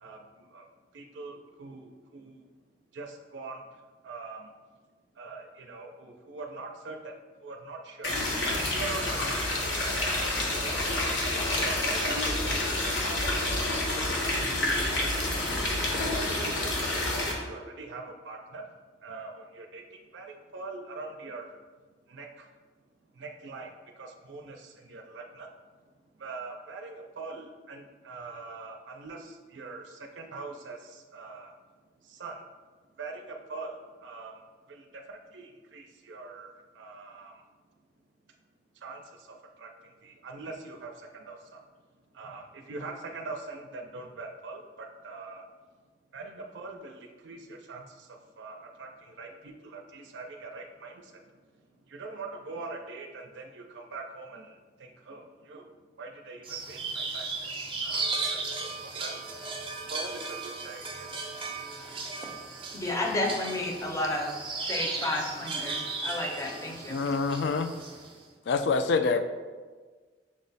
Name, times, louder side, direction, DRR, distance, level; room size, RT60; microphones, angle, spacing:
voice 1, 0.9-1.8 2.1-2.3 3.0-3.1 3.3-3.6 4.0-4.4 5.2-7.0 7.4-8.1 8.6-9.7 10.5-11.1 11.6-12.5 12.8-13.8 14.2-14.3 14.6-14.7 15.1-15.5 16.1-18.6 19.0-19.3 19.6-19.8 20.1-21.5 22.1-22.3 23.2-23.7 24.0-24.6 24.9-25.5 26.2-29.2 29.5-29.8 30.2-30.8 31.1-31.5 32.2-32.3 33.0-33.7 34.0-34.3 35.3-35.5 35.7-36.5 36.8-37.3 38.8-39.0 39.6-39.7 40.0-40.9 41.3-41.4 42.2-42.4 42.7-45.4 46.1-47.0 47.2-47.4 47.7-47.8 48.4-48.9 49.2-50.9 51.9-54.4 54.8-55.2 55.5-55.6 56.0-57.5 57.8-58.7 59.0-59.2 59.9-60.2 60.6-61.1, right 3 dB, 80° right, 3 dB, 0.5 m, -42 dB
sound 1, 8.0-17.3, left 1 dB, 90° left, 1.1 m, -28 dB
sound 2, 56.4-68.1, right 3 dB, 30° right, 0.5 m, -36 dB
voice 2, 62.7-64.4 64.7-67.0, left 2 dB, 15° left, 1 dB, 0.5 m, -31 dB
voice 3, 66.9-67.7 68.5-69.2, left 4 dB, 65° left, 9 dB, 0.3 m, -26 dB
6.1 x 2.1 x 3.9 m, 1.4 s
head